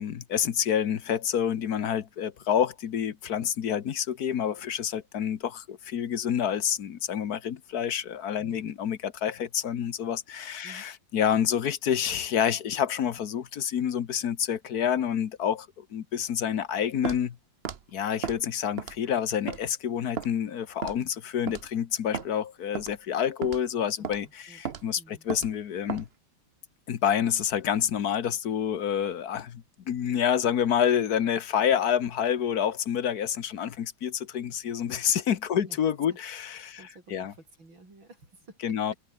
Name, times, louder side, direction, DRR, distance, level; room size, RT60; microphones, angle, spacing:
voice 1, 0.0-17.4 17.9-26.1 26.9-36.8 37.1-37.3 38.6-38.9, left 9 dB, 55° left, 1.5 m, -28 dB
voice 2, 8.4-8.7 10.6-10.9 24.0-24.6 25.0-25.3 35.5-35.8 36.7-39.0, right 2 dB, 80° right, 7.6 m, -51 dB
Walk footsteps, 17.1-17.2 17.7-17.8 18.2-18.4 18.8-19.1 19.5-19.6 20.2-20.3 20.8-21.0 21.5-21.7 22.1-22.3 22.8-22.9 23.4-23.6 24.0-24.2 24.7-24.8 25.3-25.5 25.9-26.1, right 7 dB, 45° right, 0.9 m, -34 dB
omnidirectional pair, 2.1 m